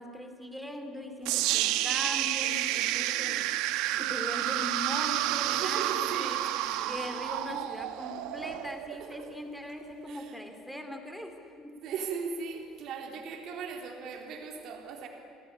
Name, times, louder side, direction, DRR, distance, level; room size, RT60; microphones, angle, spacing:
voice 1, 0.0-3.5 3.9-6.4 6.9-11.8, equal, ahead, 5 dB, 2.8 m, -40 dB
sound 1, 1.2-9.3, right 14 dB, 75° right, 1.3 m, -30 dB
voice 2, 2.7-3.0 5.5-6.9 8.9-9.3 10.1-10.4 11.8-15.1, right 5 dB, 50° right, 3 dB, 4.0 m, -39 dB
30.0 x 19.5 x 10.0 m, 2.7 s
cardioid pair, 170°, 0 cm